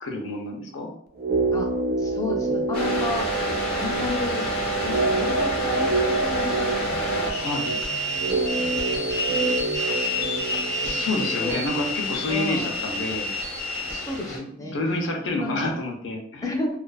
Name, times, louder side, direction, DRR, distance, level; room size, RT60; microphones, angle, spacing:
voice 1, 0.0-0.9 7.4-7.7 10.8-13.3 14.3-16.5, left 2 dB, 90° left, 2 dB, 0.5 m, -29 dB
sound 1, 1.2-13.3 13.5-13.6, right 2 dB, 55° right, 0.4 m, -28 dB
voice 2, 2.0-3.3 3.7-4.5 4.8-8.3 8.6-11.1 11.4-11.6 12.3-12.8 13.9-14.8 15.3-15.5 16.4-16.8, left 2 dB, 20° left, 1 dB, 0.3 m, -33 dB
sound 2, 2.7-14.4, equal, 55° left, 0.8 m, -28 dB
2.3 x 2.3 x 2.3 m, 0.66 s
head